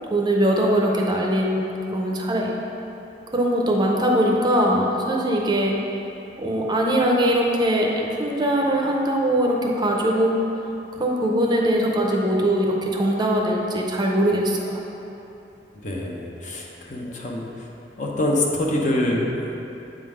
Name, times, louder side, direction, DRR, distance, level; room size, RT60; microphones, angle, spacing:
voice 1, 0.1-1.6 1.9-2.5 3.3-5.8 6.4-10.3 11.0-14.8, right 1 dB, 25° right, -1 dB, 0.6 m, -21 dB
voice 2, 15.8-17.5 18.0-19.6, left 1 dB, 45° left, -1 dB, 0.8 m, -25 dB
7.7 x 3.7 x 4.9 m, 2.9 s
head